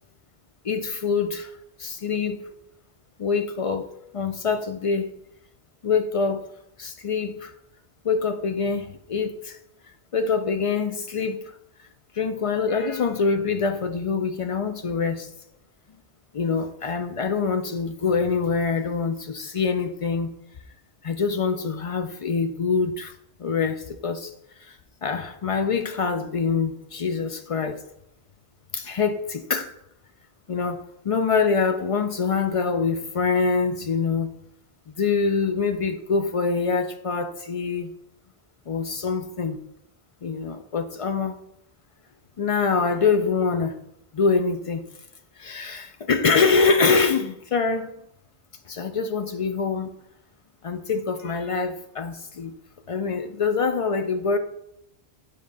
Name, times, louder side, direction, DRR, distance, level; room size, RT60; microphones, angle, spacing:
voice 1, 0.6-1.5 1.8-2.5 3.2-5.1 5.8-6.5 6.8-7.5 8.0-9.6 10.1-11.6 12.1-15.3 16.3-20.3 21.0-23.1 23.4-24.3 24.6-24.8 25.0-27.8 28.7-29.7 30.5-34.4 34.9-38.0 38.7-39.6 40.2-41.4 42.4-43.8 44.1-44.9 45.4-47.9 48.7-50.0 50.6-52.5 52.9-54.4, left 5 dB, 55° left, 0.3 m, -25 dB
9.5 x 3.8 x 3.9 m
omnidirectional pair, 1.1 m